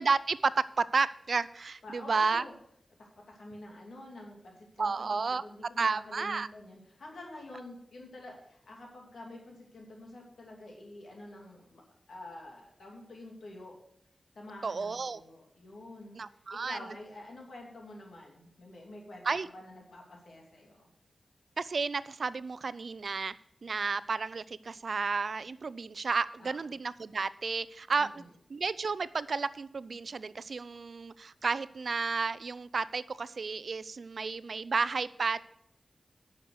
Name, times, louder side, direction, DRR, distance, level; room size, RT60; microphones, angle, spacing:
voice 1, 0.0-2.4 4.8-5.4 5.8-6.5 14.6-15.2 16.2-16.8 19.3-19.5 21.6-23.3 23.6-28.1 28.5-35.4, right 4 dB, 70° right, 17 dB, 0.4 m, -32 dB
voice 2, 1.8-2.5 3.0-11.8 12.1-13.8 14.4-16.2 16.5-19.2 19.5-20.9 26.4-26.7 28.0-28.3, left 1 dB, 85° left, -1 dB, 2.7 m, -48 dB
9.8 x 6.4 x 6.4 m, 0.74 s
cardioid pair, 55°, 0 cm